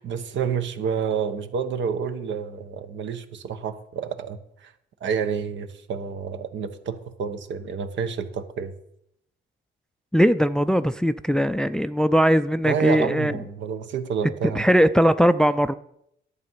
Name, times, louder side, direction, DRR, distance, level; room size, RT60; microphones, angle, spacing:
voice 1, 0.0-4.7 5.0-8.7 12.7-14.6, right 6 dB, 70° right, 1.1 m, -29 dB
voice 2, 10.1-13.3 14.5-15.7, equal, 5° left, 0.4 m, -20 dB
11.0 x 8.0 x 5.6 m
cardioid pair, 90°, 20 cm